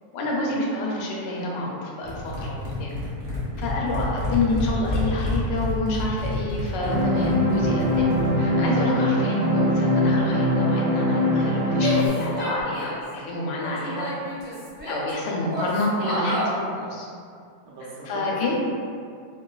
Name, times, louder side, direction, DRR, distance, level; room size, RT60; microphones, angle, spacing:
voice 1, 0.1-2.9 3.6-14.1 14.9-17.1 18.1-18.6, left 2 dB, 75° left, -3 dB, 1.1 m, -28 dB
sound 1, 2.0-8.5, left 1 dB, 45° right, 0.7 m, -29 dB
sound 2, 6.8-12.1, left 1 dB, 85° right, 1.5 m, -22 dB
Female speech woman speaking / Yell, 11.8-13.1 13.6-15.1 15.5-16.6, right 1 dB, 25° right, 1.3 m, -30 dB
voice 2, 14.9-15.3 17.6-18.6, right 1 dB, 70° right, -6 dB, 1.2 m, -40 dB
3.0 x 2.6 x 2.3 m, 2.3 s
omnidirectional pair, 2.0 m